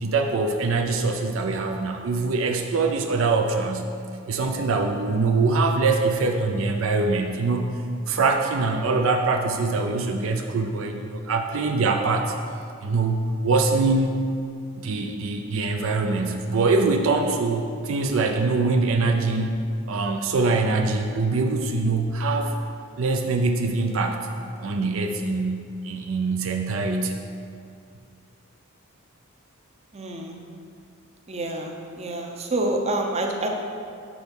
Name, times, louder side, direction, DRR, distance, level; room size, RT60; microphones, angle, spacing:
voice 1, 0.0-3.9 4.3-7.7 8.1-12.3 12.8-14.2 14.8-19.6 19.9-22.5 23.0-24.2 24.6-27.2, right 3 dB, 70° right, 4 dB, 0.4 m, -23 dB
voice 2, 29.9-30.4 31.3-33.5, right 2 dB, 30° right, 2 dB, 0.6 m, -27 dB
6.1 x 4.5 x 5.3 m, 2.4 s
head